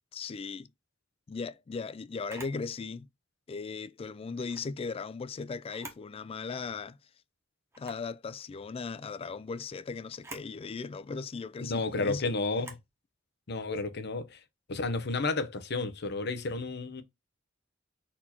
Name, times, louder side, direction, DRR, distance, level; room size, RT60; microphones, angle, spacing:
voice 1, 0.1-0.7 1.3-3.1 3.5-7.0 7.8-12.3, left 4 dB, 30° left, 0.3 m, -38 dB
Camera, 2.3-2.6 4.3-4.7 5.6-6.1 6.5-6.6 7.7-8.1 10.1-10.5 12.5-12.9, right 2 dB, 15° right, 1.2 m, -47 dB
voice 2, 11.6-12.8 13.5-14.4 14.7-17.0, left 3 dB, 60° left, 0.8 m, -32 dB
4.3 x 2.9 x 4.1 m
head